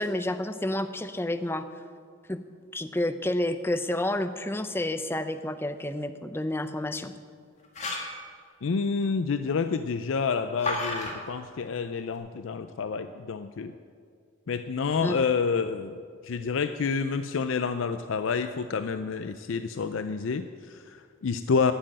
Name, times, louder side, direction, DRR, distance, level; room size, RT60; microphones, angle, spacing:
voice 1, 0.0-1.7 2.3-2.4 2.7-7.1 15.0-15.3, left 1 dB, 10° left, 9 dB, 0.5 m, -30 dB
sound 1, 7.6-8.2 10.6-11.1, left 2 dB, 35° left, 1.9 m, -31 dB
voice 2, 8.6-13.7 14.5-21.7, left 5 dB, 65° left, 10 dB, 0.4 m, -29 dB
11.5 x 7.6 x 8.7 m, 2.1 s
head